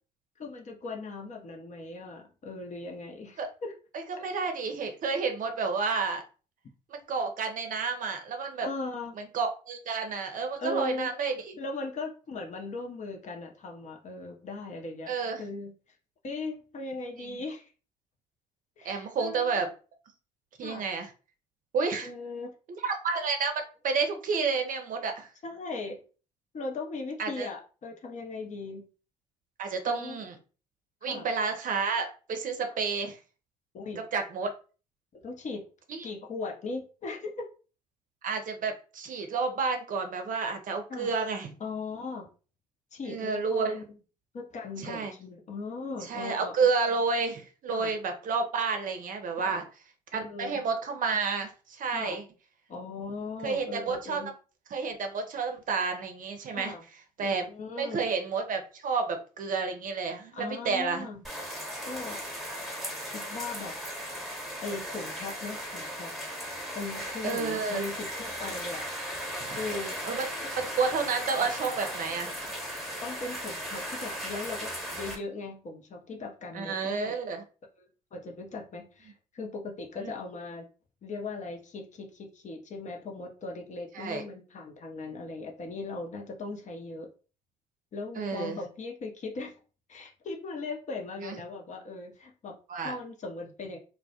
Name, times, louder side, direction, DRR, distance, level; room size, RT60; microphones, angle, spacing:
voice 1, 0.4-3.7 4.1-4.2 8.6-9.1 10.6-11.1 11.6-15.1 15.4-15.7 16.2-17.7 18.8-19.6 20.6-20.8 22.0-22.5 25.4-26.0 26.5-28.9 29.9-30.2 31.0-31.3 32.7-32.8 33.7-34.0 35.1-35.6 36.0-37.5 40.9-41.1 41.6-42.3 42.9-43.8 44.3-46.7 47.7-47.9 49.4-49.6 50.1-50.6 51.9-52.2 52.7-54.3 56.5-56.8 57.2-58.0 60.3-61.2 61.8-62.2 63.0-63.7 64.6-66.1 66.7-68.8 69.4-70.0 73.0-77.2 77.8-80.7 81.0-87.1 87.9-89.6 89.9-92.6 92.8-93.8, left 3 dB, 35° left, 2 dB, 0.6 m, -38 dB
voice 2, 3.9-6.2 6.9-8.7 9.2-11.3 15.1-15.4 17.2-17.4 18.8-19.7 20.6-21.1 21.7-22.1 22.7-25.3 27.2-27.5 29.6-30.3 31.0-33.2 34.0-34.5 35.9-36.1 38.2-41.5 43.0-43.8 44.8-45.1 46.0-49.6 50.1-52.2 53.4-54.3 54.7-56.7 57.2-57.4 57.8-61.1 67.2-67.8 69.5-69.6 70.0-70.3 70.5-72.3 76.5-77.4 80.0-80.1 83.9-84.2 88.2-88.6 91.2-91.4 92.7-92.9, right 4 dB, 40° right, 5 dB, 0.6 m, -30 dB
sound 1, 61.2-75.1, equal, ahead, 1.0 m, -37 dB
2.2 x 2.1 x 2.7 m, 0.36 s
hypercardioid pair, 60°, 20 cm